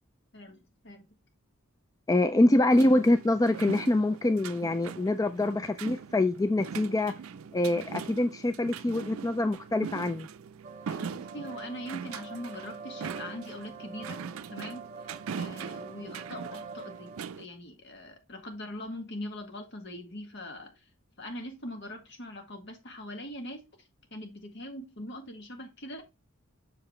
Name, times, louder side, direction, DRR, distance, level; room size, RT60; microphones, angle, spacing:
voice 1, 0.3-1.1 10.8-14.2 14.5-20.8 21.2-23.6 24.1-26.0, left 1 dB, 60° left, 1.8 m, -42 dB
voice 2, 2.1-7.1 7.5-10.3, left 1 dB, 15° left, 0.3 m, -25 dB
sound 1, 2.7-17.5, right 6 dB, 85° right, 0.4 m, -41 dB
sound 2, 10.6-17.2, right 4 dB, 35° right, 0.5 m, -45 dB
6.6 x 4.9 x 3.1 m
head